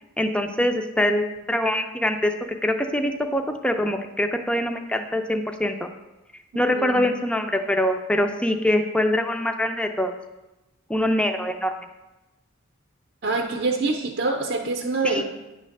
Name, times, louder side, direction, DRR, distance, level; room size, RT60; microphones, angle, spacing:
voice 1, 0.2-2.3 2.6-5.9 6.6-10.1 10.9-11.7 15.0-15.2, left 1 dB, 5° left, 5 dB, 0.4 m, -24 dB
voice 2, 6.7-7.1 13.2-15.2, right 3 dB, 50° right, 2 dB, 0.6 m, -25 dB
9.8 x 3.3 x 6.4 m, 1.0 s
head